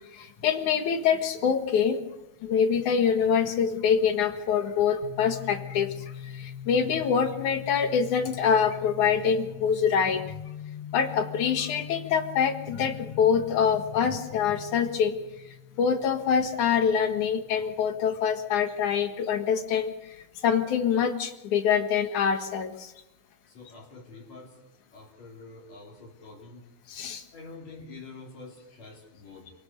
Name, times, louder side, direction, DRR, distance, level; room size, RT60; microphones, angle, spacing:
voice 1, 0.1-2.0 2.4-10.2 10.9-15.2 15.8-20.2 20.4-22.9 26.9-27.2, left 7 dB, 85° left, 7 dB, 3.2 m, -25 dB
sound 1, 5.0-18.6, left 9 dB, 40° left, 0.5 m, -43 dB
voice 2, 23.5-24.6 24.9-26.6 27.3-29.5, left 3 dB, 60° left, -1 dB, 4.4 m, -46 dB
27.5 x 17.0 x 6.8 m, 0.93 s
omnidirectional pair, 3.4 m